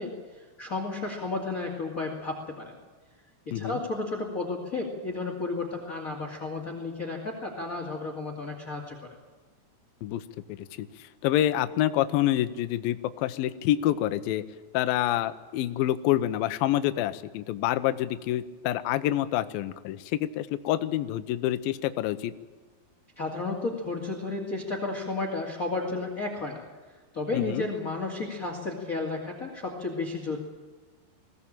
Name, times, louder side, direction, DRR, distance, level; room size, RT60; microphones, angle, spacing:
voice 1, 0.0-2.7 3.5-9.2 23.2-26.6 27.1-30.4, left 3 dB, 25° left, 1 dB, 2.1 m, -32 dB
voice 2, 10.5-14.4 14.7-22.3 27.3-27.7, left 13 dB, 75° left, 10 dB, 2.3 m, -27 dB
21.5 x 16.5 x 8.7 m, 1.3 s
omnidirectional pair, 4.9 m